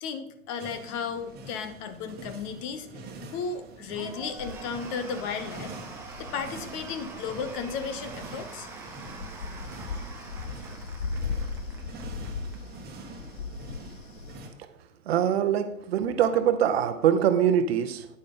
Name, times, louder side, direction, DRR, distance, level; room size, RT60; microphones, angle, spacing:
voice 1, 0.0-2.9 3.3-5.7 6.2-8.7, left 6 dB, 30° left, 9 dB, 0.9 m, -34 dB
sound 1, 0.6-14.5, right 2 dB, 25° right, 1.6 m, -45 dB
Cheering / Applause / Crowd, 3.9-12.6, right 5 dB, 5° right, 0.4 m, -45 dB
sound 2, 4.3-14.4, left 5 dB, 65° left, 0.8 m, -39 dB
voice 2, 15.1-18.1, right 9 dB, 45° right, 10 dB, 1.0 m, -23 dB
10.0 x 8.5 x 3.9 m, 0.76 s
figure-of-eight pair, 110°, 41 cm